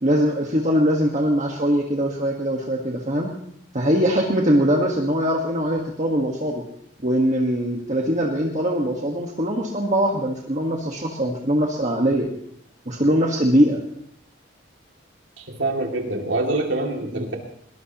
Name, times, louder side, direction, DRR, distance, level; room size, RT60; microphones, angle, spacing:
voice 1, 0.0-3.3 3.7-6.6 7.0-12.3 12.9-13.8 17.1-17.3, equal, 40° right, 0 dB, 1.5 m, -22 dB
voice 2, 15.4-17.4, right 2 dB, 80° right, 1 dB, 2.5 m, -25 dB
21.5 x 20.0 x 3.0 m, 0.71 s
head